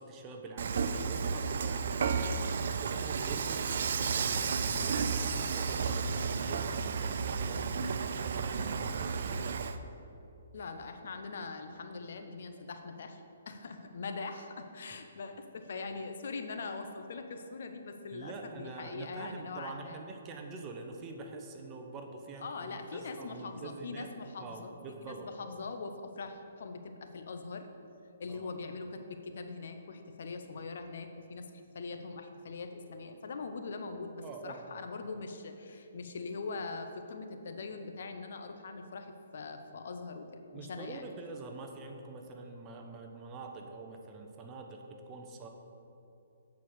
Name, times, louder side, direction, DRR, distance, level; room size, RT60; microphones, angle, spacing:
voice 1, 0.0-2.4 2.8-9.6 18.1-24.1 24.4-25.3 28.3-28.5 34.2-34.8 40.5-45.5, right 3 dB, 25° right, 3 dB, 0.9 m, -45 dB
Dishes pots and pans / Frying (food), 0.6-9.8, right 5 dB, 65° right, 0.4 m, -32 dB
voice 2, 10.5-20.0 22.4-24.8 25.0-27.7 28.2-41.0, left 4 dB, 65° left, 6 dB, 0.8 m, -42 dB
8.3 x 4.7 x 6.5 m, 2.8 s
hypercardioid pair, 145°, 0 cm